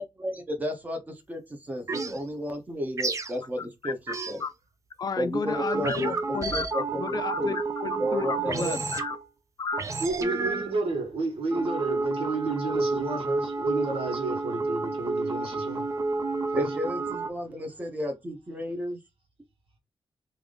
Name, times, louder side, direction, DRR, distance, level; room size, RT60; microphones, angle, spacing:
voice 1, 0.0-4.4 5.2-6.1 6.5-7.5 8.0-8.7 16.5-19.0, equal, 15° right, 0.9 m, -33 dB
sound 1, 1.9-2.2 3.0-3.3 4.1-4.4 5.5-9.3 9.7-10.8 11.5-17.3, right 3 dB, 35° right, 0.4 m, -31 dB
voice 2, 5.0-9.2 9.6-9.8, left 5 dB, 45° left, 0.4 m, -32 dB
voice 3, 10.0-16.7, right 3 dB, 85° right, 1.2 m, -31 dB
3.4 x 2.5 x 3.7 m
wide cardioid pair, 150°, 9 cm